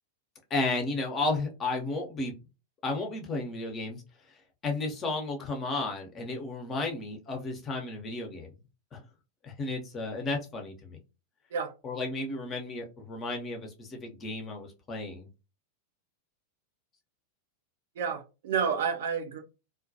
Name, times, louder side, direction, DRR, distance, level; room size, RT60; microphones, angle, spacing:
voice 1, 0.5-2.3 2.8-4.0 4.3-8.5 8.9-9.0 9.4-11.0 11.8-15.3, left 2 dB, 25° left, 0.7 m, -33 dB
voice 2, 18.0-19.4, right 6 dB, 60° right, 0.4 m, -30 dB
2.2 x 2.1 x 2.6 m
figure-of-eight pair, 90°, 0 cm